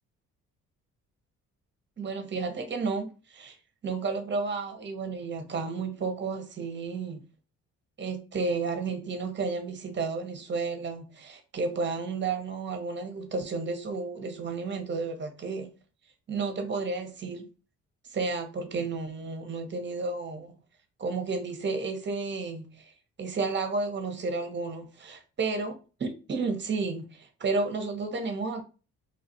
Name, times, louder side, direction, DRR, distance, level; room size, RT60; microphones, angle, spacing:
voice 1, 2.0-3.6 3.8-7.3 8.0-15.7 16.3-17.4 18.1-20.6 21.0-22.9 23.2-25.7 26.0-28.6, right 4 dB, 35° right, 0.9 m, -32 dB
3.6 x 2.4 x 2.7 m
cardioid pair, 90°, 30 cm